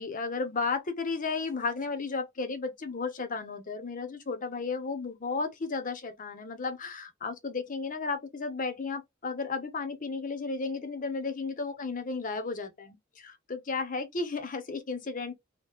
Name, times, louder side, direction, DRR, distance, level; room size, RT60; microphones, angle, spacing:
voice 1, 0.0-15.3, left 4 dB, 40° left, 0.7 m, -34 dB
2.9 x 2.7 x 3.3 m
head